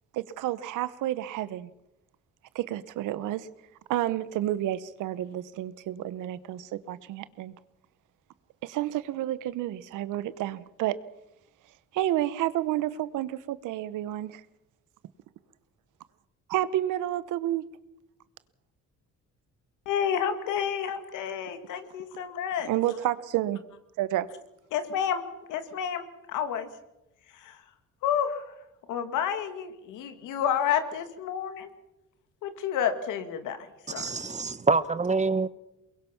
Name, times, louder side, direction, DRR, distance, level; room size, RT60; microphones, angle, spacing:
voice 1, 0.1-1.7 2.5-3.5 3.9-7.5 8.6-11.0 11.9-14.4 16.5-17.6 22.6-23.6 24.0-24.3, right 13 dB, 90° right, 0.9 m, -30 dB
voice 2, 19.9-22.7 24.7-25.2 25.5-26.7 27.4-27.6 28.0-28.4 28.9-31.7 32.4-33.7 33.9-34.1, left 8 dB, 90° left, 2.1 m, -30 dB
voice 3, 33.9-35.5, right 4 dB, 25° right, 1.0 m, -26 dB
23.0 x 21.5 x 5.9 m
cardioid pair, 90°, 30 cm